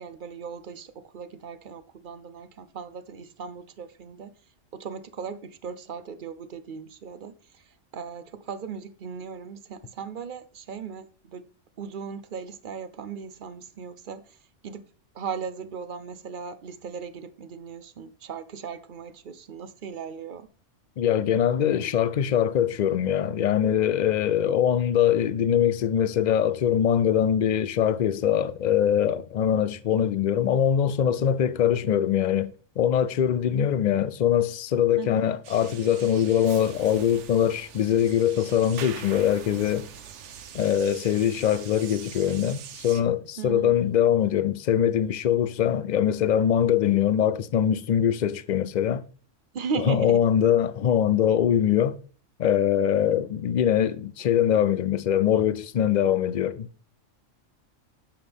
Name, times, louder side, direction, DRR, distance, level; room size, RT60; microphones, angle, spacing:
voice 1, 0.0-4.3 4.7-7.6 7.9-11.5 11.8-14.2 14.6-14.8 15.1-20.5 35.0-35.2 43.4-43.7 49.5-50.2, right 6 dB, 50° right, 0.7 m, -37 dB
voice 2, 21.0-39.9 40.5-49.0 49.8-52.0 52.4-56.7, left 9 dB, 80° left, 0.4 m, -23 dB
sound 1, 35.4-43.0, right 8 dB, 70° right, 1.1 m, -43 dB
10.0 x 7.4 x 3.5 m
omnidirectional pair, 1.3 m